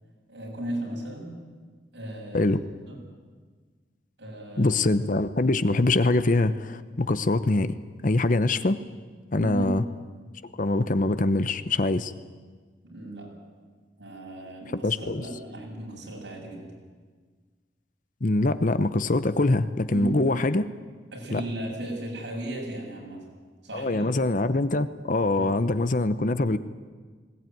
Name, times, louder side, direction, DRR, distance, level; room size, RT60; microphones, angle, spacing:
voice 1, 0.3-1.3 1.9-2.5 2.9-3.0 4.2-4.8 9.4-9.8 12.8-13.3 14.0-16.7 19.9-20.3 21.1-23.2 23.6-24.1 25.3-25.5, right 1 dB, 80° right, -1 dB, 7.9 m, -35 dB
voice 2, 4.6-7.8 8.0-8.8 9.3-9.8 10.6-12.1 14.8-15.2 18.2-20.6 21.3-21.4 23.7-26.6, left 2 dB, 45° left, 12 dB, 0.8 m, -23 dB
20.5 x 18.0 x 9.3 m, 1.5 s
head